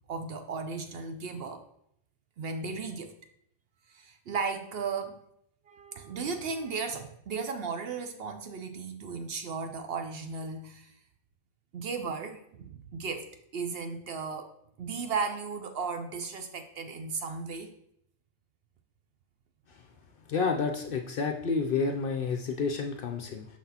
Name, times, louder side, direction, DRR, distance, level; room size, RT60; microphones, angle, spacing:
voice 1, 0.1-1.6 2.4-3.1 3.9-5.2 5.7-10.9 11.7-14.5 14.8-17.7, right 4 dB, 60° right, 7 dB, 0.7 m, -35 dB
voice 2, 20.3-23.5, left 4 dB, 60° left, 4 dB, 0.6 m, -29 dB
6.0 x 5.9 x 2.8 m, 0.72 s
omnidirectional pair, 1.3 m